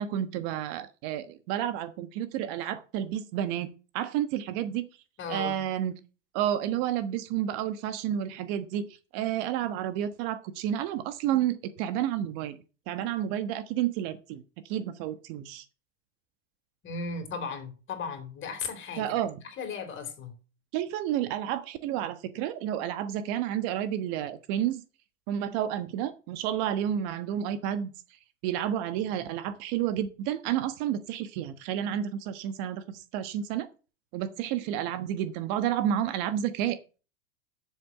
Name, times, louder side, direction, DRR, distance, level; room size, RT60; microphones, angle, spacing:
voice 1, 0.0-4.8 5.3-5.9 6.3-8.9 9.1-12.6 12.9-15.6 19.0-19.4 20.7-24.8 25.3-27.9 28.4-33.7 34.1-36.8, right 10 dB, 55° right, 1.3 m, -30 dB
voice 2, 5.2-5.6 16.8-19.1 19.4-20.3, left 4 dB, 35° left, 3.9 m, -36 dB
8.0 x 7.2 x 7.6 m
hypercardioid pair, 105°, 36 cm